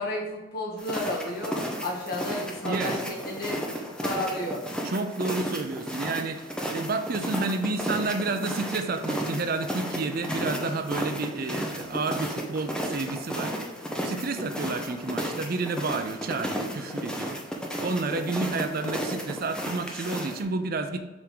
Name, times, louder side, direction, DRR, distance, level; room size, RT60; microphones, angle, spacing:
voice 1, 0.0-4.6, left 1 dB, 45° left, -2 dB, 1.6 m, -32 dB
sound 1, 0.8-20.4, equal, 5° left, 0.6 m, -33 dB
voice 2, 2.7-3.0 4.8-13.6 14.0-17.4 17.8-21.0, right 3 dB, 45° right, 7 dB, 0.4 m, -30 dB
7.1 x 3.6 x 3.8 m, 1.2 s
head